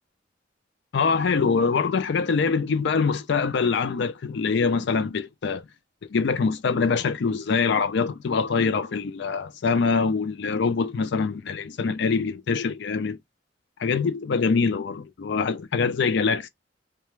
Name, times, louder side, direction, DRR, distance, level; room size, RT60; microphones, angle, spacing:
voice 1, 0.9-5.6 6.1-13.2 13.8-16.5, left 5 dB, 65° left, 0.4 m, -24 dB
2.4 x 2.2 x 3.0 m
head